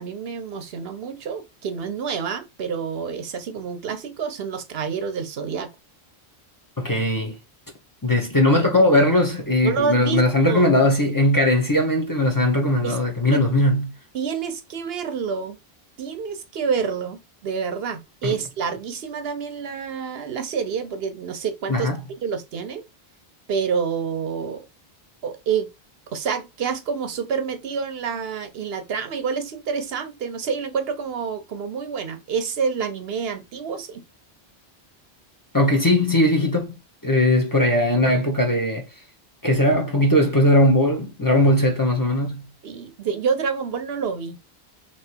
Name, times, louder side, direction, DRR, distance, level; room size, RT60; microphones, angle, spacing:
voice 1, 0.0-5.7 9.6-10.7 12.8-13.0 13.3-13.4 14.1-15.6 16.0-21.9 22.2-22.8 23.5-24.7 25.2-25.7 26.1-34.0 42.6-44.4, right 6 dB, 70° right, 0.9 m, -28 dB
voice 2, 6.8-7.4 8.0-13.9 18.2-18.4 21.7-22.0 35.5-36.8 37.0-38.9 39.4-42.5, left 1 dB, 20° left, 0.9 m, -19 dB
3.4 x 2.9 x 4.3 m
omnidirectional pair, 1.1 m